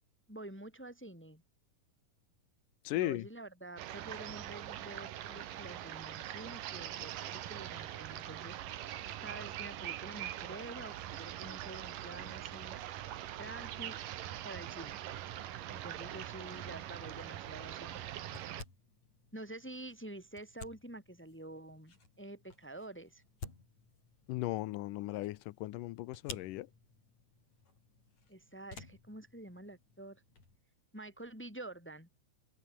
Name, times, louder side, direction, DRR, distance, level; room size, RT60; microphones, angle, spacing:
voice 1, 0.3-1.4 2.9-8.6 9.2-12.8 13.4-14.0 14.4-15.0 15.7-18.1 19.3-23.2 28.3-30.2 30.9-32.1, right 1 dB, 5° left, 1.7 m, -48 dB
voice 2, 2.8-3.2 24.3-26.7, left 17 dB, 80° left, 2.2 m, -36 dB
sound 1, 3.8-18.6, right 12 dB, 75° right, 3.0 m, -43 dB
sound 2, 17.0-30.6, left 4 dB, 50° left, 7.7 m, -55 dB
omnidirectional pair, 4.0 m